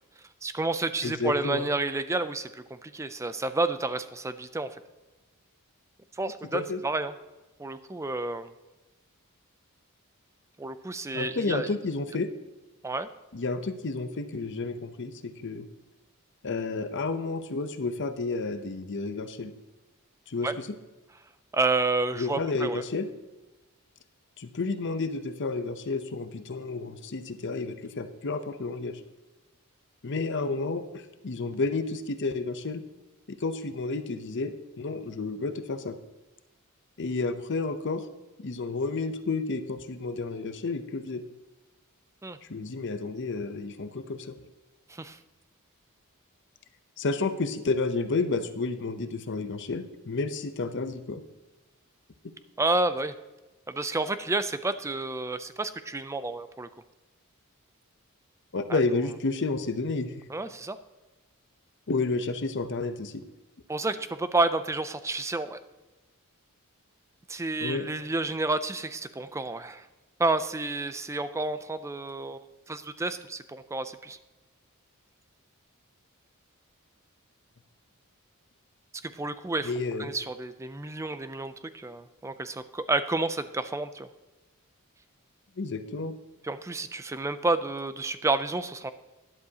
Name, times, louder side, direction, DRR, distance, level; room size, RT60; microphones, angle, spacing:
voice 1, 0.4-4.7 6.2-7.1 7.6-8.5 10.6-11.7 12.8-13.1 20.4-20.5 21.5-22.8 42.2-42.4 44.9-45.2 52.6-53.1 53.7-56.7 58.7-58.8 60.3-60.8 63.7-65.6 67.3-69.9 70.2-74.2 79.0-79.7 80.0-84.1 86.4-88.9, right 2 dB, 15° right, 12 dB, 0.4 m, -30 dB
voice 2, 1.0-1.7 6.5-6.8 11.1-12.3 13.3-15.7 16.4-19.5 20.3-20.7 22.2-23.1 24.4-29.0 30.0-32.8 33.4-36.0 37.0-38.1 38.4-41.2 42.5-44.3 47.0-51.2 58.5-60.1 61.9-63.2 67.6-67.9 79.6-80.1 85.6-86.1, left 3 dB, 55° left, 10 dB, 0.7 m, -31 dB
12.5 x 11.0 x 2.9 m, 1.1 s
head